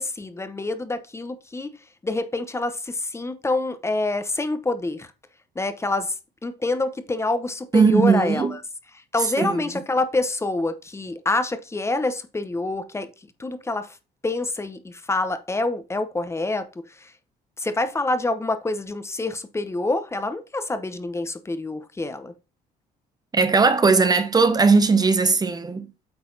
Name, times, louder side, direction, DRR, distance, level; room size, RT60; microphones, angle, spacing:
voice 1, 0.0-5.1 5.5-6.1 6.4-8.6 8.9-14.0 14.2-17.1 17.6-22.4, left 2 dB, 15° left, 0.9 m, -27 dB
voice 2, 7.7-8.5 9.4-9.5 23.3-25.9, right 4 dB, 25° right, 0.8 m, -18 dB
8.8 x 4.1 x 4.0 m
cardioid pair, 110°, 17 cm